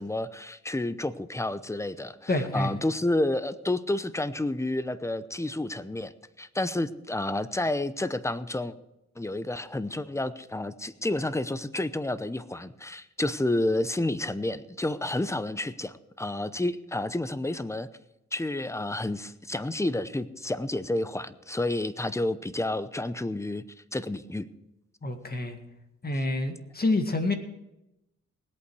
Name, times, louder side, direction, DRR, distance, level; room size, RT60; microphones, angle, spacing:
voice 1, 0.0-6.1 6.4-8.8 9.2-17.9 18.3-23.6 23.9-24.5, left 1 dB, 10° left, 14 dB, 0.8 m, -30 dB
voice 2, 2.3-2.7 25.0-25.6 26.0-27.3, left 2 dB, 30° left, 6 dB, 1.9 m, -27 dB
19.0 x 8.6 x 4.8 m, 0.90 s
cardioid pair, 80°, 29 cm